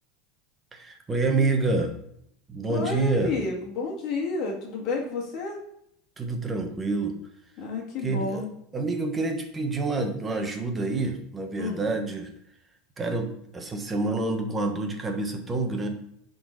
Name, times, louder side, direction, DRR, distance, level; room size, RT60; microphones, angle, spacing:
voice 1, 0.7-1.9 2.5-3.4 6.2-7.2 8.0-8.4 8.7-12.3 13.0-15.9, right 3 dB, 15° right, 4 dB, 1.1 m, -27 dB
voice 2, 2.7-5.6 7.6-8.5 11.6-11.8, left 3 dB, 45° left, -2 dB, 2.0 m, -30 dB
11.0 x 4.0 x 3.9 m, 0.73 s
supercardioid pair, 155°, 0 cm